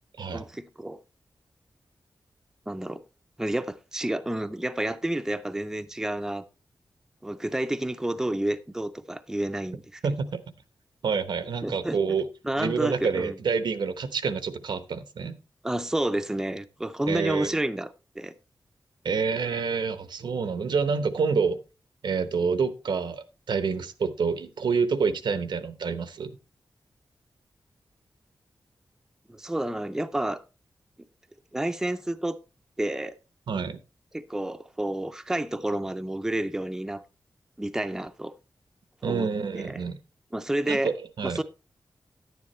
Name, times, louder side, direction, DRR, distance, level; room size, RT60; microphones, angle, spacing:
voice 1, 0.3-1.0 2.7-3.0 3.4-6.4 7.2-10.0 11.6-12.0 12.4-13.4 15.6-18.3 29.3-30.4 31.5-32.4 32.8-33.1 34.1-37.0 37.6-38.3 39.0-39.8 40.3-40.9 41.2-41.4, right 1 dB, 5° right, 0.4 m, -30 dB
voice 2, 10.0-10.4 11.0-12.2 12.6-15.4 17.1-17.6 19.0-21.6 22.0-26.4 33.5-33.8 39.0-40.0 40.7-40.9 41.2-41.4, right 5 dB, 90° right, 0.9 m, -27 dB
10.5 x 9.4 x 3.1 m
wide cardioid pair, 180°, 7 cm